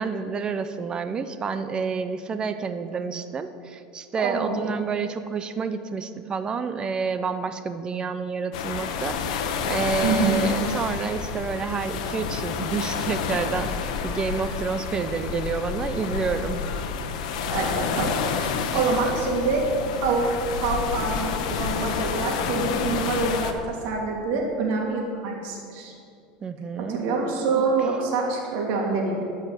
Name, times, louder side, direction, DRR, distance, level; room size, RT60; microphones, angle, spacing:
voice 1, 0.0-16.6 26.4-27.0, right 5 dB, 25° right, 10 dB, 0.7 m, -29 dB
voice 2, 4.2-4.6 10.0-10.4 17.5-18.1 18.4-19.6 20.0-25.9 26.9-29.2, right 4 dB, 60° right, -1 dB, 3.1 m, -26 dB
sound 1, 8.5-23.5, left 6 dB, 85° left, 1.1 m, -29 dB
14.0 x 5.8 x 8.4 m, 2.4 s
supercardioid pair, 140°, 4 cm